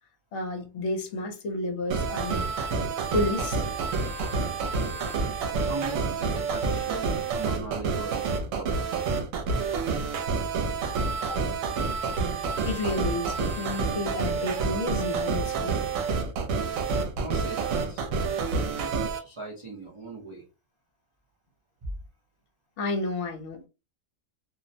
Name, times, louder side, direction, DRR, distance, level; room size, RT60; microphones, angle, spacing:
voice 1, 0.3-2.4 3.1-3.6 11.2-11.4 12.3-15.8 22.8-23.7, left 2 dB, 65° left, 0.9 m, -31 dB
sound 1, 1.9-19.2, right 4 dB, 80° right, 1.0 m, -28 dB
voice 2, 5.5-8.9 17.2-18.1 18.3-20.4, right 3 dB, 55° right, 0.3 m, -39 dB
2.4 x 2.0 x 2.6 m
omnidirectional pair, 1.4 m